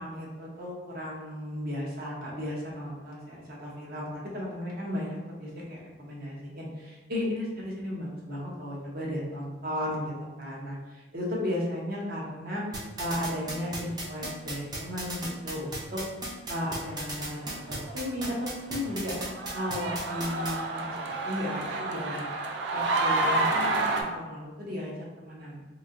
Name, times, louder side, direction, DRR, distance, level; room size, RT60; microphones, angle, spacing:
voice 1, 0.0-16.0 16.5-19.2 19.5-22.1 22.7-23.9 24.1-25.7, left 1 dB, 55° right, -4 dB, 0.7 m, -35 dB
sound 1, 12.7-20.5, right 2 dB, 20° right, 0.5 m, -35 dB
sound 2, 17.4-17.9 18.2-18.3 18.9-24.0, right 2 dB, 70° right, 0.4 m, -29 dB
3.1 x 2.7 x 2.5 m, 1.2 s
head